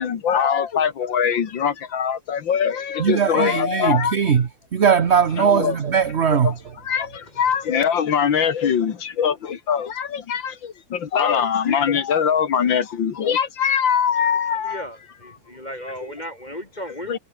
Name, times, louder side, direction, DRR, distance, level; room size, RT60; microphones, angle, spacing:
voice 1, 0.0-4.2 5.4-5.8 6.3-6.5 6.8-14.8 17.1-17.2, left 7 dB, 75° left, 2.4 m, -22 dB
voice 2, 3.0-6.5, right 7 dB, 40° right, 1.1 m, -19 dB
voice 3, 14.4-17.2, equal, 20° left, 3.2 m, -35 dB
omnidirectional pair, 2.1 m